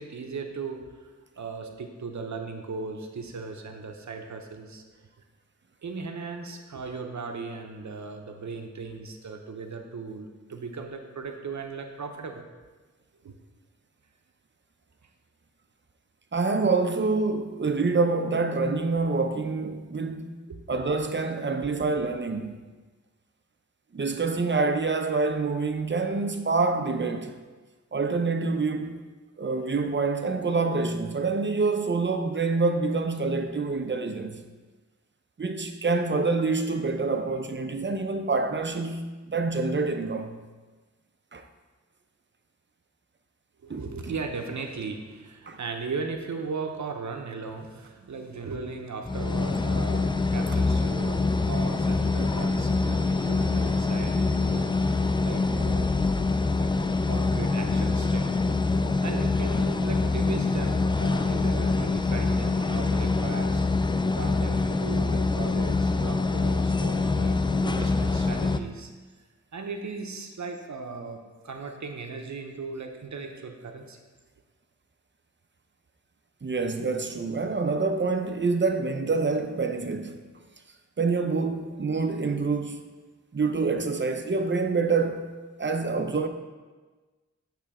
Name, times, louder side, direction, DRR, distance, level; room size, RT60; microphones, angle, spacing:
voice 1, 0.0-4.8 5.8-12.5 13.2-13.3 20.5-20.6 43.6-54.8 55.2-55.9 56.5-56.7 57.1-58.3 59.0-63.6 64.2-67.4 67.6-68.9 69.5-74.0, right 4 dB, 70° right, 0.8 m, -37 dB
voice 2, 16.3-20.4 20.7-22.6 23.9-27.3 27.9-29.0 29.4-34.4 35.4-40.4 41.3-41.4 43.7-44.1 45.5-45.6 52.2-52.4 52.9-53.0 76.4-80.2 81.0-82.8 83.3-85.3 85.6-86.3, right 4 dB, 40° right, 0.6 m, -26 dB
sound 1, 49.0-68.6, left 3 dB, 15° left, 0.3 m, -25 dB
8.7 x 3.3 x 4.8 m
cardioid pair, 50°, 29 cm